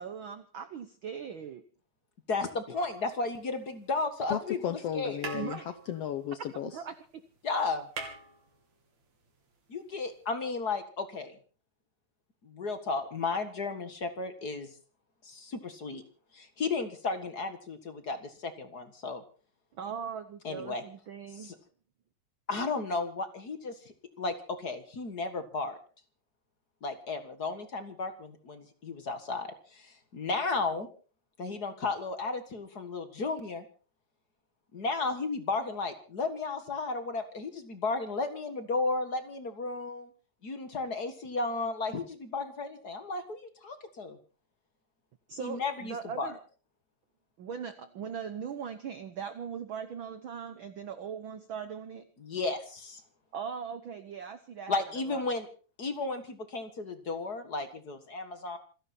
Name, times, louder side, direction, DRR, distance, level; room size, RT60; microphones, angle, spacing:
voice 1, 0.0-1.6 5.3-5.6 6.7-7.2 19.8-21.5 45.3-46.4 47.4-52.1 53.3-54.8 55.1-55.4, right 7 dB, 75° right, 11 dB, 1.1 m, -40 dB
voice 2, 2.3-5.2 7.4-7.9 9.7-11.3 12.4-14.7 15.2-16.0 16.3-19.2 20.4-20.8 21.3-21.5 22.5-23.7 24.2-25.8 26.8-30.9 31.4-33.6 34.7-40.1 40.4-44.2 45.4-46.3 52.2-53.0 54.7-55.5 55.8-58.6, left 3 dB, 40° left, 8 dB, 1.7 m, -34 dB
sound 1, 2.7-3.9 4.8-4.9 5.2-7.1 7.3-7.4 7.7-9.1 10.2-10.3, right 4 dB, 60° right, 4.1 m, -44 dB
voice 3, 4.3-6.7, left 10 dB, 70° left, 11 dB, 1.6 m, -34 dB
27.5 x 11.0 x 4.4 m, 0.38 s
omnidirectional pair, 3.6 m